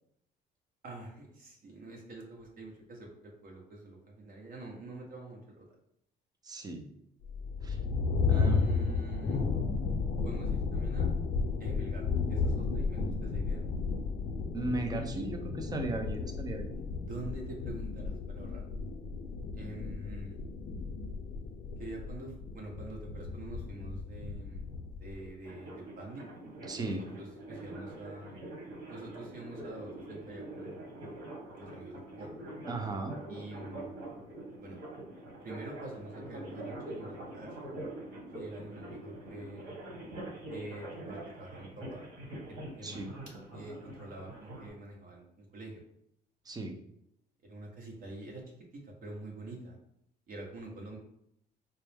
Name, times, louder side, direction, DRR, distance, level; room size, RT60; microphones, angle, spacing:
voice 1, 0.8-5.7 8.3-9.4 10.2-11.1 11.6-13.6 17.0-18.6 19.5-20.4 21.8-24.6 25.0-26.3 26.8-28.4 28.9-32.3 33.3-33.9 34.6-34.8 35.4-37.7 38.3-39.7 40.5-42.1 42.5-43.1 43.5-45.8 47.4-49.8 50.3-51.0, right 2 dB, 55° right, -1 dB, 1.2 m, -46 dB
voice 2, 6.4-6.9 7.6-7.8 8.2-8.9 14.5-16.8 26.7-27.0 32.7-33.1 42.8-43.1 46.5-46.7, right 2 dB, 25° right, 4 dB, 0.6 m, -36 dB
sound 1, 7.2-25.3, left 4 dB, 60° left, 0.6 m, -33 dB
sound 2, 25.4-44.7, right 1 dB, 80° right, 1.4 m, -44 dB
4.3 x 2.1 x 3.4 m, 0.74 s
cardioid pair, 110°, 17 cm